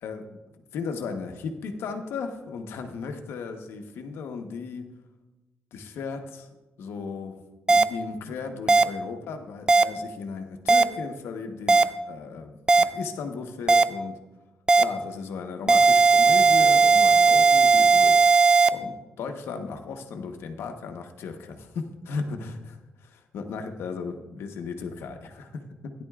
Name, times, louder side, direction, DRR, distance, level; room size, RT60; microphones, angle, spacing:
voice 1, 0.0-4.9 5.7-6.5 6.8-7.4 7.7-14.2 14.8-18.4 18.7-25.9, left 5 dB, 80° left, 5 dB, 1.1 m, -36 dB
sound 1, 7.7-7.8 8.7-8.8 9.7-9.8 10.7-10.8 11.7-11.8 12.7-12.8 13.7-13.8 14.7-14.8 15.7-18.7, right 4 dB, 20° right, 0.4 m, -17 dB
16.0 x 10.5 x 2.4 m, 1.1 s
cardioid pair, 125°, 4 cm